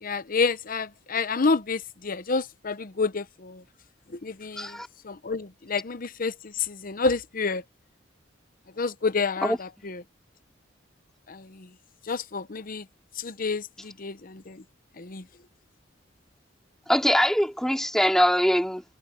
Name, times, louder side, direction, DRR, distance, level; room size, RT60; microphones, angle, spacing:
voice 1, 0.0-3.6 4.2-4.8 5.0-7.6 8.8-10.0 11.3-11.7 12.1-12.8 13.2-14.6 15.0-15.2, left 4 dB, 50° left, 0.8 m, -29 dB
voice 2, 4.6-4.9 9.4-9.6 16.9-18.8, equal, 5° left, 2.8 m, -22 dB
head